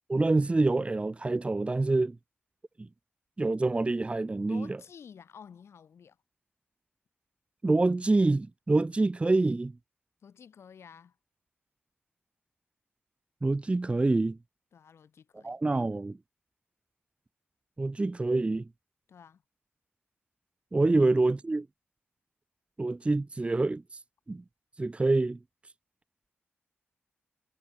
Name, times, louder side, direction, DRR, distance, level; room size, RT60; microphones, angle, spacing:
voice 1, 0.1-2.2 2.8-2.9 3.4-4.8 7.6-9.7 13.4-14.4 15.4-16.2 17.8-18.7 20.7-21.7 22.8-23.8 24.3-24.4 24.8-25.4, right 2 dB, 25° right, 0.9 m, -26 dB
voice 2, 4.5-6.2 10.2-11.2 14.7-15.8 19.1-19.4 20.9-21.1, left 7 dB, 75° left, 4.9 m, -51 dB
cardioid pair, 65°, 4 cm